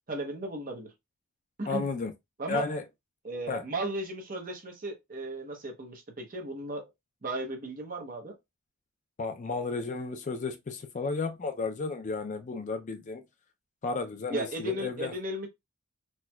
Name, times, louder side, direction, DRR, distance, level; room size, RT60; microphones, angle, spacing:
voice 1, 0.1-0.9 1.6-1.8 2.4-2.7 3.2-6.9 7.2-8.3 14.3-15.5, right 1 dB, 40° right, 0.8 m, -35 dB
voice 2, 1.7-2.1 2.5-2.8 3.5-3.6 9.2-13.2 13.8-15.1, left 4 dB, 35° left, 0.3 m, -33 dB
4.3 x 2.2 x 2.2 m
head